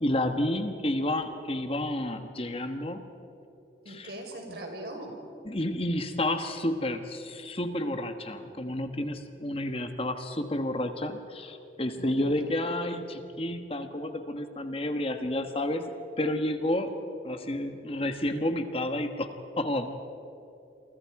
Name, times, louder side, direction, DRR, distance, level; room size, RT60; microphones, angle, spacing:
voice 1, 0.0-3.0 3.9-4.1 4.5-4.6 5.4-15.9 16.2-16.9 17.2-20.0, left 1 dB, 30° left, 7 dB, 1.3 m, -30 dB
voice 2, 3.8-5.1 12.0-12.4, right 1 dB, 60° right, 2 dB, 5.1 m, -41 dB
29.0 x 24.5 x 4.8 m, 2.9 s
head